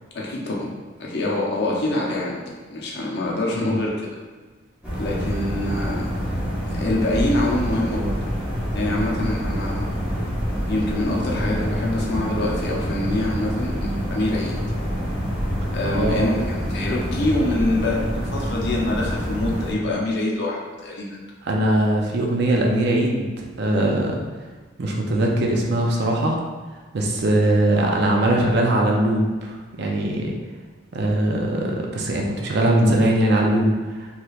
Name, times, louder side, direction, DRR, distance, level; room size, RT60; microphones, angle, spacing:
voice 1, 0.1-0.7 1.0-2.4 2.7-4.2 5.0-6.1 6.7-8.1 8.7-9.9 10.7-14.5 15.7-21.1, left 1 dB, 55° left, -3 dB, 0.6 m, -25 dB
sound 1, 4.8-19.7, equal, 5° right, 0.8 m, -26 dB
voice 2, 15.9-16.4 21.4-24.2 24.8-26.4 26.9-30.3 30.9-34.1, right 1 dB, 55° right, 0 dB, 0.4 m, -21 dB
3.2 x 2.9 x 2.3 m, 1.4 s
head